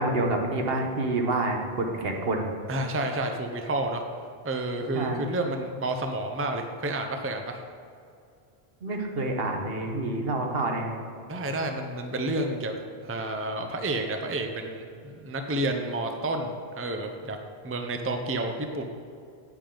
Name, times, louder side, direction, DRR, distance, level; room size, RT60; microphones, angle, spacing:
voice 1, 0.0-2.5 4.9-5.2 8.8-11.0, right 2 dB, 65° right, 2 dB, 1.3 m, -28 dB
voice 2, 2.7-4.0 4.4-7.6 11.3-12.7 13.0-17.4 17.6-18.8, right 2 dB, 15° right, 5 dB, 0.6 m, -30 dB
10.0 x 8.7 x 3.9 m, 2.4 s
omnidirectional pair, 1.1 m